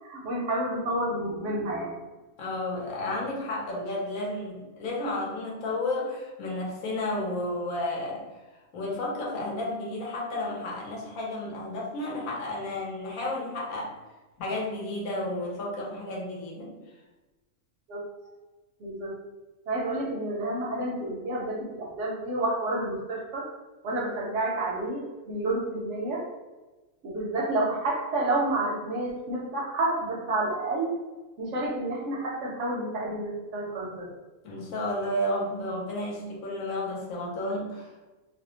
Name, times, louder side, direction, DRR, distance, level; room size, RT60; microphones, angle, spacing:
voice 1, 0.0-1.9 17.9-18.0 18.8-19.1 19.7-23.5 23.8-26.2 27.0-30.9 31.4-34.1, right 2 dB, 65° right, -3 dB, 0.8 m, -29 dB
voice 2, 2.4-8.2 8.7-14.0 14.4-16.8 34.4-38.1, left 1 dB, 70° left, -3 dB, 1.1 m, -32 dB
2.6 x 2.0 x 2.7 m, 1.2 s
omnidirectional pair, 1.5 m